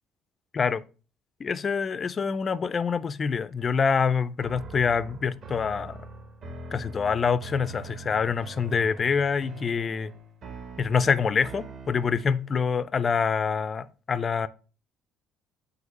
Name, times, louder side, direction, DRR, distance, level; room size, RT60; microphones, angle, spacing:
voice 1, 1.4-6.0 6.7-10.1 10.8-14.5, left 6 dB, 30° left, 0.4 m, -26 dB
sound 1, 4.4-12.5, right 3 dB, 40° right, 1.1 m, -43 dB
7.9 x 2.8 x 5.3 m
cardioid pair, 155°, 0 cm